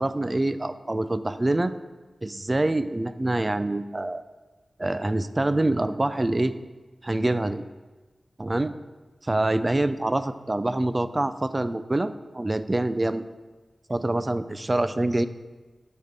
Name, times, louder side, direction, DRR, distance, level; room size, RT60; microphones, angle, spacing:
voice 1, 0.0-1.7 2.2-4.2 4.8-6.5 7.0-7.6 8.4-8.7 9.2-13.2 13.9-15.3, right 2 dB, 25° right, 12 dB, 0.4 m, -25 dB
9.5 x 3.6 x 6.6 m, 1.3 s
wide cardioid pair, 80°, 0 cm